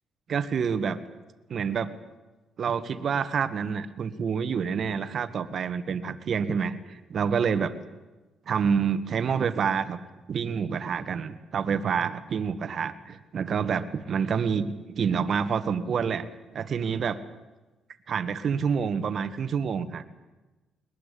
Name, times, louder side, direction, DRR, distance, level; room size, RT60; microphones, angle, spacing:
voice 1, 0.3-1.0 1.5-1.9 2.6-7.7 8.5-10.0 10.3-16.3 16.5-17.2 18.1-20.1, right 6 dB, 55° right, 11 dB, 1.7 m, -28 dB
21.5 x 21.0 x 8.5 m, 1.1 s
cardioid pair, 90°, 0 cm